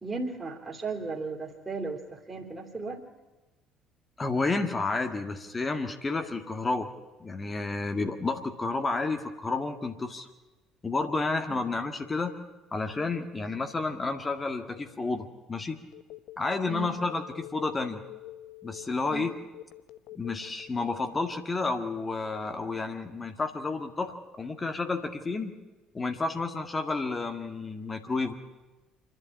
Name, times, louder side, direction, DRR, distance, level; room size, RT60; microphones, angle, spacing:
voice 1, 0.0-3.1 11.5-11.6 16.7-16.9 19.1-19.3, right 3 dB, 20° right, 1 dB, 3.1 m, -36 dB
voice 2, 4.2-6.9 7.2-10.3 10.8-12.4 12.7-15.8 16.4-18.0 18.6-19.3 20.2-25.5 25.9-28.3, left 3 dB, 25° left, 5 dB, 1.8 m, -31 dB
Telephone, 15.9-21.2, left 15 dB, 60° left, 0.8 m, -46 dB
27.0 x 11.0 x 8.7 m, 1.2 s
figure-of-eight pair, 55°, 0 cm